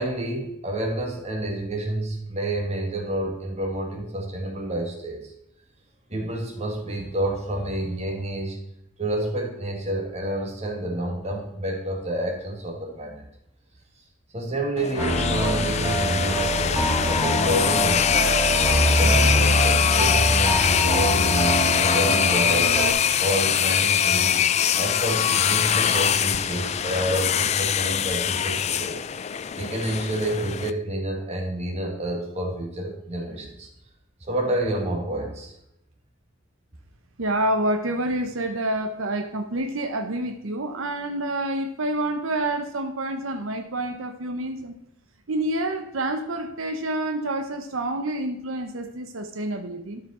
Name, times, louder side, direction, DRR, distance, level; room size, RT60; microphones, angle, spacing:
voice 1, 0.0-5.3 6.1-8.6 9.0-13.2 14.3-18.4 19.0-22.8 23.2-24.4 24.7-29.0 29.5-33.7 34.3-35.5, right 1 dB, 35° right, 0 dB, 2.0 m, -29 dB
sound 1, 14.8-30.7, left 9 dB, 35° left, 0.3 m, -23 dB
sound 2, 15.0-22.9, right 1 dB, 15° right, 2.0 m, -24 dB
voice 2, 37.2-44.7 45.3-50.0, right 1 dB, 90° right, 5 dB, 0.9 m, -28 dB
12.5 x 4.9 x 4.3 m, 0.81 s
head